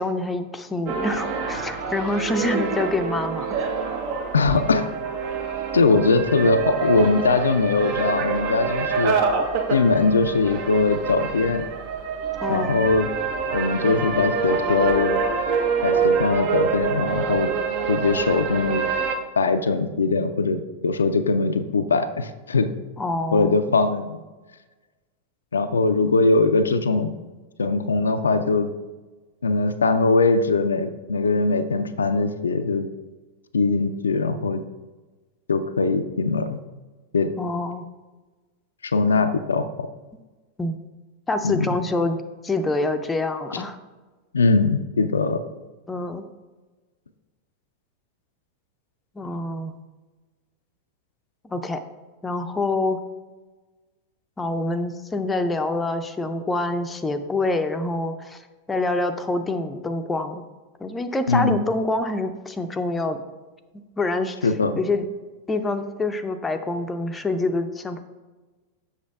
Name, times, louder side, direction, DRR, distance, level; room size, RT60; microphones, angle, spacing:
voice 1, 0.0-3.7 12.4-12.8 23.0-23.6 37.4-37.8 40.6-40.8 41.3-42.2 42.4-43.8 45.9-46.2 49.2-49.8 51.4-51.8 52.2-53.0 54.4-58.4 58.7-60.4 60.8-63.2 64.0-64.4 64.8-65.1 65.5-68.0, left 2 dB, 15° left, 7 dB, 0.5 m, -26 dB
sound 1, 0.9-19.2, right 5 dB, 45° right, 0.8 m, -26 dB
voice 2, 4.3-4.9 5.7-9.2 9.7-11.7 12.5-13.1 13.5-15.2 15.8-17.5 17.9-18.8 19.4-22.7 23.3-24.2 25.5-27.1 27.6-28.7 29.4-32.9 33.5-34.6 35.5-36.6 37.1-37.3 38.8-39.9 41.4-41.7 43.5-43.6 44.3-45.4 61.3-61.6 64.4-64.8, left 3 dB, 70° left, 9 dB, 0.4 m, -21 dB
7.2 x 6.3 x 3.4 m, 1.2 s
figure-of-eight pair, 90°, 0 cm